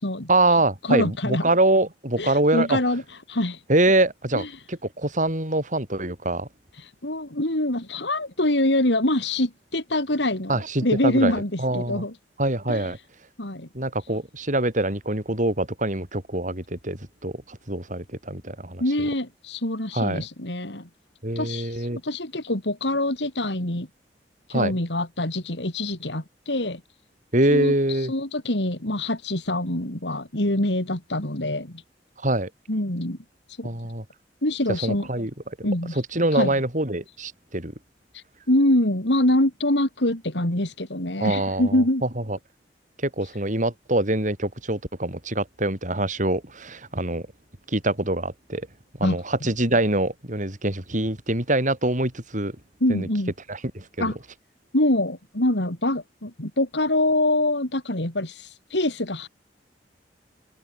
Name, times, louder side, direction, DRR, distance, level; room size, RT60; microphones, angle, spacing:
voice 1, 0.3-2.8 3.7-6.5 10.5-11.3 11.6-12.0 12.4-13.0 13.7-19.1 19.9-20.3 21.2-22.0 24.5-24.8 27.3-28.1 32.2-32.5 33.6-34.0 34.7-35.3 35.6-37.7 41.2-42.4 43.0-47.2 47.7-48.7 49.0-52.6 52.9-53.1 53.5-54.1, right 2 dB, 45° right, 6.4 m, -24 dB
voice 2, 0.8-1.5 2.2-3.6 4.3-4.5 6.8-12.1 12.7-12.9 13.4-13.7 18.8-20.9 21.3-23.9 24.5-26.8 27.5-31.8 32.7-33.2 33.5-33.7 34.4-35.1 35.6-36.0 36.3-36.5 38.1-42.0 49.0-49.2 52.8-53.3 54.0-54.2 54.7-59.3, left 1 dB, 85° left, 4.3 m, -25 dB
open air
head